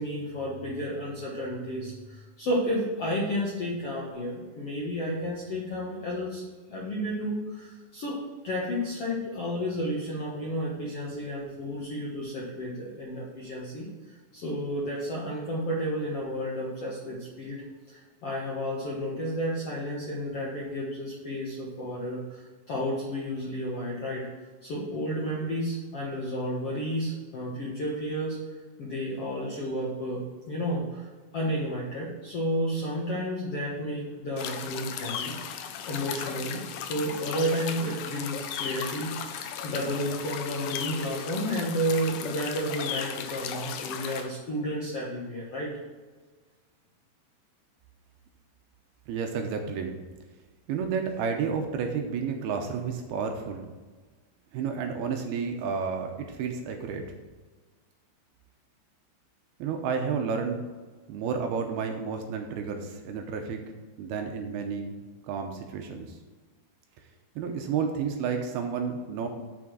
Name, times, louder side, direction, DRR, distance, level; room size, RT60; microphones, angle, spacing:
voice 1, 0.0-6.4 6.7-17.6 17.9-28.4 28.8-31.1 31.3-45.7, equal, 65° left, -5 dB, 1.4 m, -32 dB
sound 1, 34.4-44.3, left 8 dB, 85° left, 2.8 m, -36 dB
voice 2, 49.1-50.0 50.7-53.7 54.5-57.0 59.6-60.6 61.1-63.6 64.0-64.9 65.3-66.2 67.4-69.3, right 6 dB, 75° right, 4 dB, 2.5 m, -31 dB
6.9 x 6.1 x 6.2 m, 1.3 s
omnidirectional pair, 4.9 m